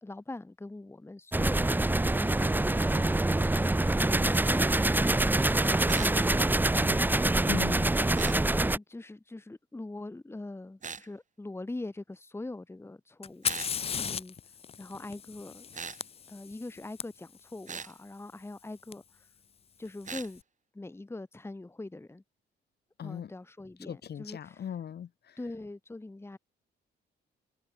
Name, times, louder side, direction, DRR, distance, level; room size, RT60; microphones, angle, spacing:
voice 1, 0.0-1.9 2.1-3.6 4.0-6.5 8.0-13.5 13.9-14.4 14.8-15.7 16.3-19.3 19.8-20.4 20.7-22.2 23.0-24.7 25.4-26.4, left 2 dB, 10° left, 1.6 m, -42 dB
sound 1, 1.3-8.8, right 2 dB, 10° right, 0.8 m, -25 dB
sound 2, 5.9-6.2 8.1-8.4 10.8-11.1 13.4-13.7 15.7-16.0 17.7-17.9 20.0-20.3, right 5 dB, 40° right, 5.1 m, -39 dB
voice 2, 7.5-7.9 23.0-23.3 23.9-25.4, left 9 dB, 55° left, 2.1 m, -39 dB
Fire, 13.2-17.0 18.9-19.0 19.9-20.3, left 7 dB, 30° left, 0.4 m, -36 dB
cardioid pair, 90°, 20 cm